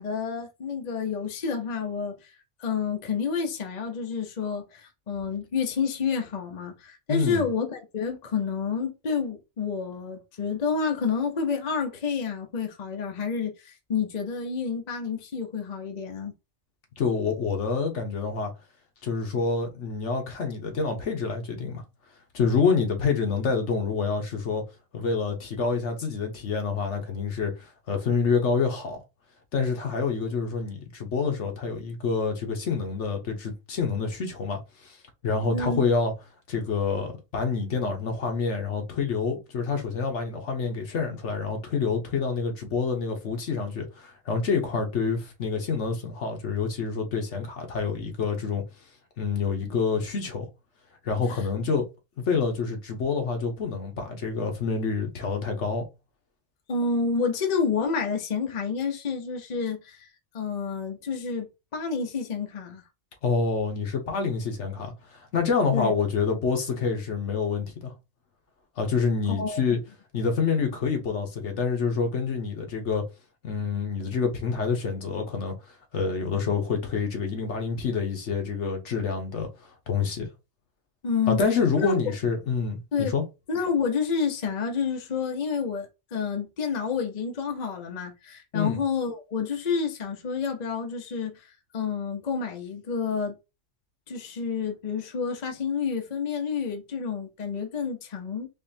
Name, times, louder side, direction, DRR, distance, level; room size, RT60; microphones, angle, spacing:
voice 1, 0.0-2.3 2.6-16.3 35.5-35.9 51.3-51.4 56.7-60.1 60.3-61.5 61.7-62.8 65.7-65.9 69.3-69.6 81.0-81.4 81.8-81.9 82.9-83.1 83.5-93.3 94.1-98.5, left 5 dB, 40° left, 0.8 m, -29 dB
voice 2, 7.1-7.5 17.0-18.5 19.0-21.8 22.3-24.6 24.9-29.0 29.5-35.0 35.2-36.1 36.5-48.6 49.2-50.5 51.0-51.8 52.2-55.8 63.2-67.9 68.8-69.8 70.1-73.0 73.4-75.6 75.9-79.5 79.9-80.3 81.3-83.2 88.5-88.8, left 5 dB, 70° left, 1.3 m, -27 dB
4.1 x 3.0 x 2.7 m
omnidirectional pair, 1.3 m